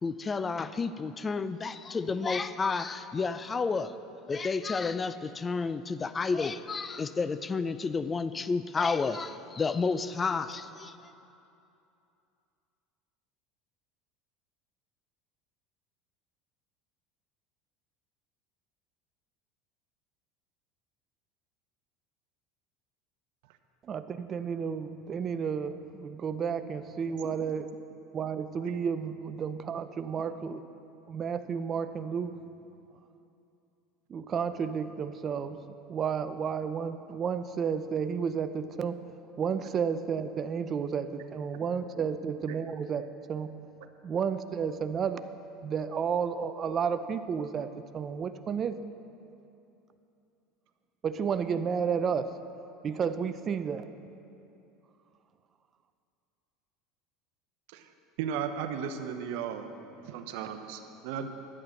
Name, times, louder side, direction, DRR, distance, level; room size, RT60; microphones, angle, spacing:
voice 1, 0.0-3.9 4.3-10.9, left 4 dB, 25° left, 13 dB, 0.5 m, -31 dB
voice 2, 23.8-27.7 28.1-30.6 31.1-32.4 34.1-35.6 35.9-39.1 39.4-43.6 44.0-45.2 45.6-48.8 51.0-52.3 52.8-53.9, right 6 dB, 35° right, 11 dB, 0.5 m, -32 dB
voice 3, 58.2-59.7 59.9-61.3, right 7 dB, 75° right, 7 dB, 0.8 m, -35 dB
11.0 x 8.8 x 6.4 m, 2.8 s
supercardioid pair, 100°, 0 cm